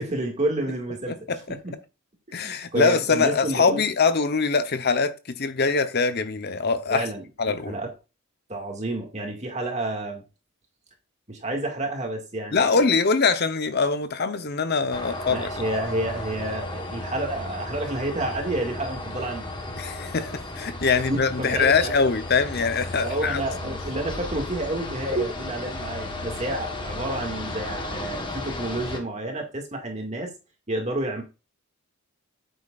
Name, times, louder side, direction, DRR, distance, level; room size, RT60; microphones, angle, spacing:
voice 1, 0.0-1.2 1.6-1.7 2.3-3.8 6.9-7.2 7.7-7.9 8.5-10.2 11.3-12.9 15.3-19.8 20.9-21.9 23.0-30.3 30.7-31.2, right 1 dB, 30° right, 2.1 m, -30 dB
voice 2, 1.1-1.4 2.3-7.0 7.4-7.8 12.5-15.7 19.8-23.4, left 4 dB, 45° left, 0.9 m, -23 dB
sound 1, 14.9-29.0, left 2 dB, 20° left, 1.2 m, -34 dB
9.4 x 7.8 x 2.5 m
head